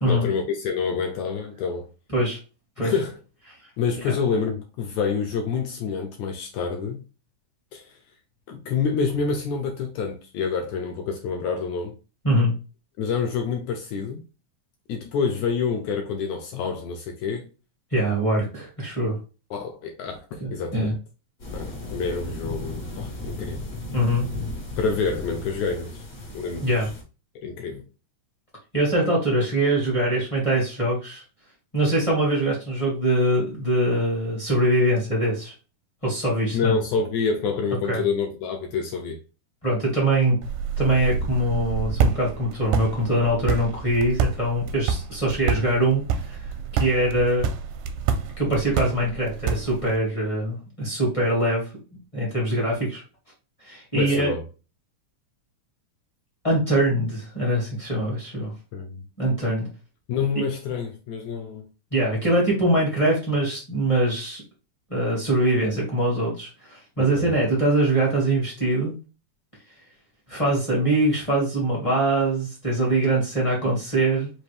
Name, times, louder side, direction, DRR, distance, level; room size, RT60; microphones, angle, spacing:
voice 1, 0.1-1.9 2.8-3.2 3.8-7.0 7.7-7.9 8.5-11.9 13.0-14.2 14.9-17.5 19.5-21.0 21.5-23.6 24.8-26.0 26.3-26.9 27.4-27.8 36.5-39.2 53.9-54.4 58.7-59.0 60.1-61.7 67.0-67.3, left 5 dB, 80° left, 1.7 m, -27 dB
voice 2, 12.2-12.5 17.9-19.1 20.4-20.9 23.9-24.3 26.6-26.9 28.7-31.2 31.7-35.5 36.0-36.7 37.9-38.0 39.6-40.4 40.8-46.4 46.7-47.5 48.4-51.6 52.1-53.0 53.6-54.3 56.4-58.5 59.2-59.7 61.9-64.4 64.9-68.9 70.3-74.3, right 1 dB, 30° left, 0.5 m, -23 dB
sound 1, 21.4-27.0, left 2 dB, 55° left, 0.9 m, -35 dB
sound 2, 40.4-50.0, right 6 dB, 80° right, 1.8 m, -28 dB
5.1 x 2.6 x 3.3 m
omnidirectional pair, 3.9 m